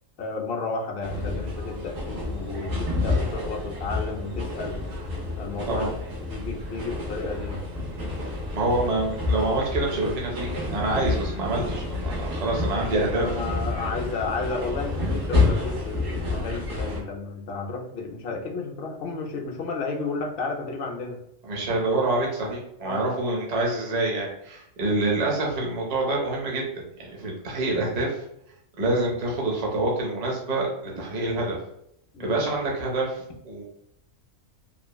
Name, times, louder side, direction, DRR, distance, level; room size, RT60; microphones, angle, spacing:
voice 1, 0.2-4.8 5.4-5.9 6.3-7.6 12.7-21.2 22.8-23.2 24.9-25.0 32.1-32.4, left 3 dB, 65° left, 2 dB, 0.6 m, -32 dB
Train Thailand, 1.0-17.0, left 2 dB, 80° right, 1.1 m, -29 dB
voice 2, 8.5-13.2 21.4-28.2 28.8-31.6 32.2-33.6, right 2 dB, 45° right, -2 dB, 0.5 m, -26 dB
3.1 x 2.0 x 2.2 m, 0.77 s
omnidirectional pair, 1.4 m